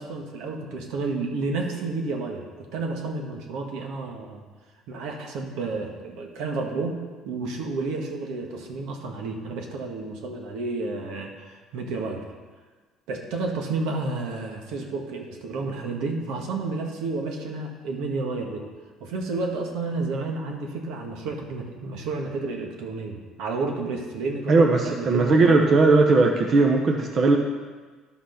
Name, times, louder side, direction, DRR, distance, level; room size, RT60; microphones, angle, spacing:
voice 1, 0.0-4.4 4.9-7.0 7.2-12.2 13.1-18.7 19.0-25.6, right 3 dB, 75° right, 2 dB, 1.6 m, -31 dB
voice 2, 24.5-27.4, right 3 dB, 40° right, 2 dB, 0.9 m, -18 dB
11.5 x 6.0 x 5.8 m, 1.4 s
cardioid pair, 140°, 0 cm